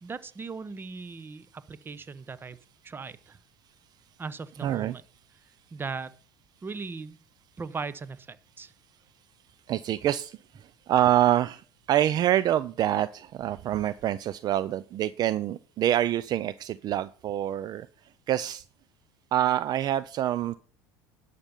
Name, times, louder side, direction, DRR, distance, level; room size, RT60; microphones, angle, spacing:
voice 1, 0.0-2.6 2.8-3.4 4.2-5.0 5.7-6.1 6.6-7.2 7.6-8.7, right 4 dB, 25° right, 17 dB, 0.9 m, -38 dB
voice 2, 4.6-5.0 9.7-17.9 18.3-18.6 19.3-20.6, right 12 dB, 45° right, 17 dB, 0.5 m, -26 dB
11.5 x 6.8 x 5.4 m, 0.40 s
hypercardioid pair, 85°, 9 cm